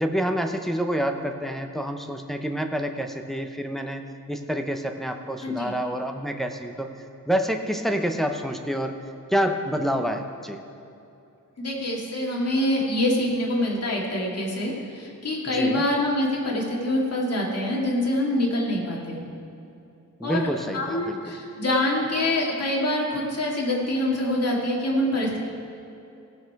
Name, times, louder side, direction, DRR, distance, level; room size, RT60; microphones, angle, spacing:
voice 1, 0.0-4.0 4.3-6.9 7.3-9.0 9.3-10.6 15.5-15.8 20.2-21.4, equal, ahead, 5 dB, 0.7 m, -27 dB
voice 2, 11.6-19.2 20.2-20.4 20.7-25.4, left 1 dB, 50° left, -2 dB, 2.2 m, -25 dB
16.5 x 6.7 x 4.7 m, 2.8 s
wide cardioid pair, 125°, 33 cm